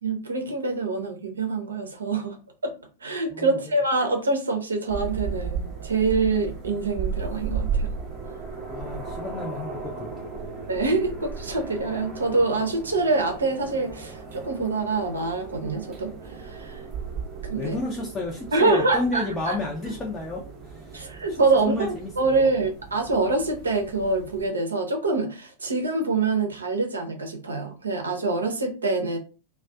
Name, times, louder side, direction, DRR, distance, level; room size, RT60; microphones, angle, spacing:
voice 1, 0.0-2.4 2.6-2.7 3.0-7.9 10.7-16.8 17.4-17.8 18.5-19.6 20.9-29.2, right 3 dB, 75° right, 0.6 m, -25 dB
sound 1, 4.9-24.5, right 5 dB, 30° right, 0.7 m, -35 dB
voice 2, 8.7-10.1 17.6-21.4 21.6-22.5, left 2 dB, 15° left, 0.5 m, -32 dB
2.4 x 2.2 x 2.3 m
figure-of-eight pair, 90°, 0 cm